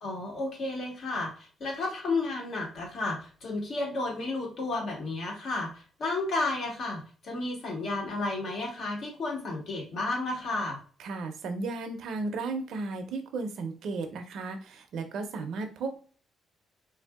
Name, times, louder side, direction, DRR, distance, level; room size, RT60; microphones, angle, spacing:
voice 1, 0.0-10.8, left 2 dB, 65° left, -1 dB, 1.5 m, -32 dB
voice 2, 11.0-16.0, right 3 dB, 75° right, 6 dB, 0.5 m, -34 dB
3.3 x 2.6 x 2.3 m, 0.41 s
cardioid pair, 90°, 0 cm